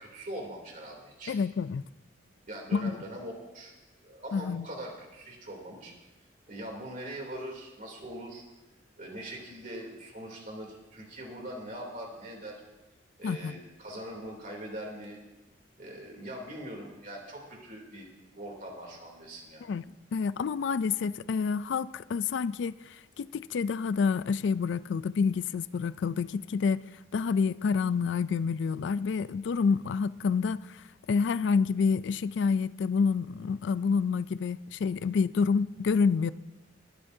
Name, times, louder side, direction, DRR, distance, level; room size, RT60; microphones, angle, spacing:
voice 1, 0.0-1.3 2.5-3.7 4.0-5.9 6.5-8.4 9.0-12.5 13.2-15.2 15.8-19.7, right 1 dB, 45° right, 2.9 m, -42 dB
voice 2, 1.3-1.8 2.7-2.9 4.3-4.7 13.2-13.6 19.7-19.8 20.1-26.8 27.1-36.3, left 5 dB, 65° left, 0.3 m, -28 dB
21.0 x 12.5 x 2.7 m
head